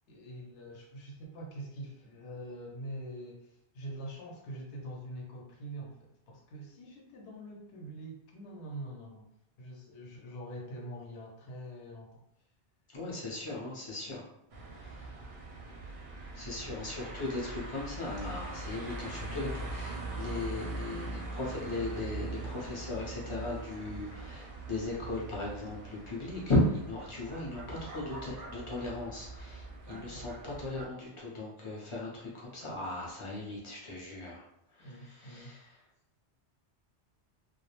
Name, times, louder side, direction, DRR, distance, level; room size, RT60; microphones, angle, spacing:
voice 1, 0.1-9.3 9.6-12.2 16.6-17.2 29.9-30.3 34.8-35.5, right 1 dB, 75° left, -1 dB, 0.9 m, -45 dB
voice 2, 12.9-14.3 14.7-15.1 16.3-35.7, left 2 dB, 35° left, -4 dB, 0.5 m, -37 dB
sound 1, 14.5-30.9, right 2 dB, 60° right, 0.6 m, -42 dB
2.3 x 2.0 x 2.8 m, 0.79 s
omnidirectional pair, 1.2 m